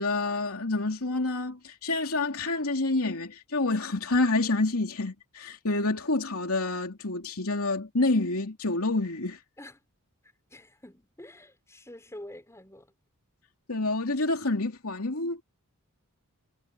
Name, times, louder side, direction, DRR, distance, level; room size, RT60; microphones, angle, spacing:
voice 1, 0.0-9.4 13.7-15.4, left 2 dB, 70° left, 3.1 m, -28 dB
voice 2, 10.2-13.0, left 1 dB, 15° left, 4.9 m, -47 dB
head